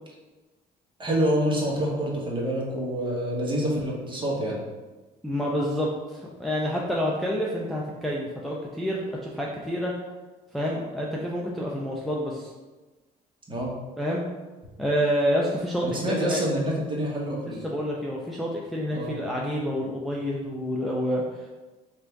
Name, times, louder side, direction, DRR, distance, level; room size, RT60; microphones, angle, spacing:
voice 1, 1.0-4.6 13.5-13.7 15.8-17.7 18.9-19.2, right 1 dB, 30° right, -3 dB, 1.1 m, -27 dB
voice 2, 5.2-9.9 10.5-12.5 14.0-14.2 14.8-16.4 17.6-21.5, equal, ahead, -4 dB, 0.5 m, -28 dB
3.3 x 2.6 x 4.5 m, 1.2 s
cardioid pair, 110°, 17 cm